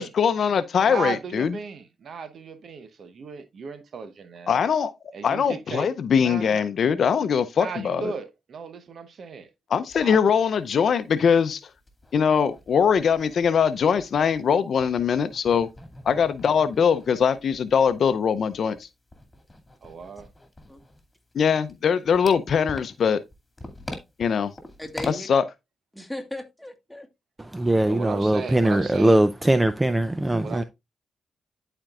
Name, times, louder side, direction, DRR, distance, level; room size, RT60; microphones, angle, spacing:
voice 1, 0.0-1.6 4.5-4.9 5.2-8.1 9.7-11.6 12.1-15.7 16.1-18.9 21.3-23.2 24.2-24.5 25.3-25.4, left 7 dB, 65° left, 0.6 m, -22 dB
voice 2, 0.8-4.6 5.1-5.9 6.2-6.6 7.6-9.5 10.0-10.2 19.8-20.3 27.8-29.2 30.4-30.6, right 5 dB, 65° right, 0.9 m, -36 dB
sound 1, 9.9-10.0 10.4-10.5 10.8-10.9 11.4-14.5 14.8-25.1, left 1 dB, 20° left, 2.3 m, -43 dB
voice 3, 24.8-25.3 25.9-27.1, left 1 dB, 5° left, 1.8 m, -36 dB
voice 4, 27.4-30.6, right 1 dB, 20° right, 0.5 m, -21 dB
11.5 x 4.4 x 2.4 m
supercardioid pair, 50°, 0 cm